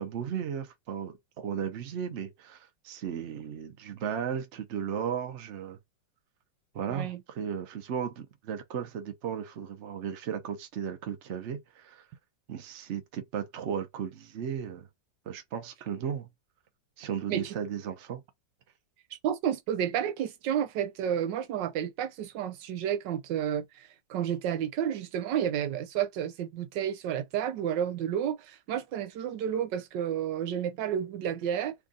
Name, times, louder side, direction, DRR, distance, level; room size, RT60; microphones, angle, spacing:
voice 1, 0.0-5.8 6.7-12.0 12.5-14.9 15.3-16.3 17.0-18.2, right 8 dB, 50° right, 0.9 m, -35 dB
voice 2, 6.9-7.2 17.3-17.5 19.2-31.7, right 9 dB, 80° right, 1.2 m, -31 dB
3.5 x 2.5 x 3.7 m
omnidirectional pair, 2.0 m